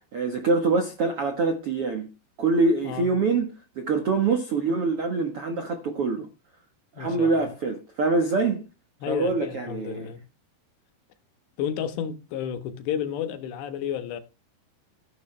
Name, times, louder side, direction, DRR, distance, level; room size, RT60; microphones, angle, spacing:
voice 1, 0.1-2.1 2.4-6.3 7.0-8.6 9.1-10.1, right 3 dB, 65° right, 1.4 m, -25 dB
voice 2, 7.0-7.5 9.0-10.2 11.6-14.2, left 9 dB, 85° left, 3.5 m, -31 dB
15.0 x 10.0 x 3.3 m
omnidirectional pair, 4.8 m